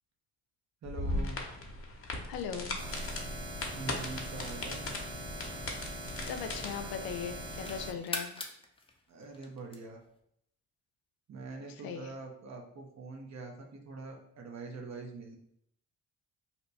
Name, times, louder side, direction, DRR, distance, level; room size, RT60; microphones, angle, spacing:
sound 1, 0.8-6.7, left 2 dB, 35° left, 0.8 m, -38 dB
voice 1, 0.8-1.4 3.4-3.5 3.8-4.9 9.1-10.0 11.3-15.4, right 3 dB, 45° right, 2 dB, 0.8 m, -44 dB
voice 2, 2.3-2.8 6.2-8.4 11.8-12.1, left 7 dB, 70° left, 7 dB, 0.6 m, -39 dB
sound 2, 2.8-7.9, right 1 dB, 70° right, 1.2 m, -42 dB
sound 3, 6.1-6.8 7.2-10.2, left 3 dB, 15° left, 0.5 m, -43 dB
2.8 x 2.2 x 4.1 m, 0.74 s
supercardioid pair, 60°, 37 cm